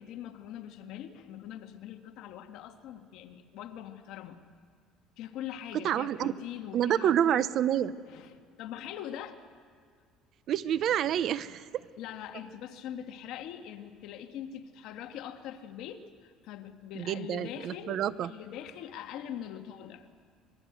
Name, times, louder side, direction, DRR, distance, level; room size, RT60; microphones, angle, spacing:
voice 1, 0.0-4.4 5.2-7.5 8.1-9.4 12.0-20.1, left 10 dB, 70° left, 6 dB, 1.6 m, -42 dB
voice 2, 5.8-6.3 6.7-7.9 10.5-11.7 16.9-18.3, right 10 dB, 55° right, 16 dB, 0.7 m, -28 dB
26.5 x 21.5 x 8.0 m, 2.1 s
cardioid pair, 120°, 0 cm